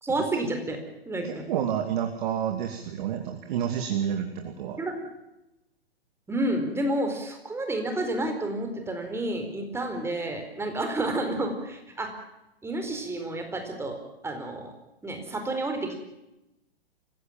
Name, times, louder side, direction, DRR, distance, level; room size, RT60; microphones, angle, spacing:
voice 1, 0.0-0.8 1.1-1.4 4.8-5.0 6.3-12.1 12.6-14.7 15.0-16.0, right 1 dB, 10° right, 5 dB, 4.3 m, -30 dB
voice 2, 1.2-4.8, right 9 dB, 50° right, 5 dB, 2.8 m, -29 dB
28.5 x 16.5 x 7.5 m, 0.93 s
hypercardioid pair, 125°, 31 cm